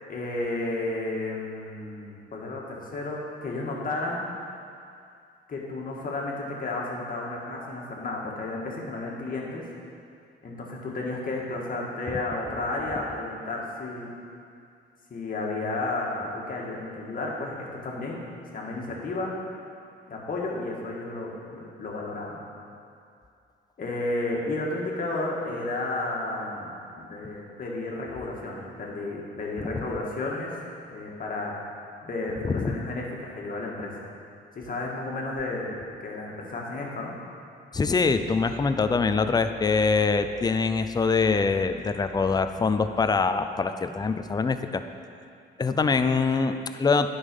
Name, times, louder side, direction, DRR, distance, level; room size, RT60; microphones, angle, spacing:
voice 1, 0.1-4.2 5.5-9.6 10.4-14.1 15.1-18.2 18.5-19.4 20.1-22.4 23.8-30.6 30.9-31.7 32.0-33.9 34.6-35.7 36.0-37.1, left 2 dB, 45° left, -2 dB, 1.8 m, -32 dB
voice 2, 29.6-29.9 32.5-32.8 37.7-44.8 45.6-47.1, left 4 dB, 20° left, 9 dB, 0.5 m, -24 dB
10.0 x 5.6 x 5.3 m, 2.4 s
cardioid pair, 90°, 20 cm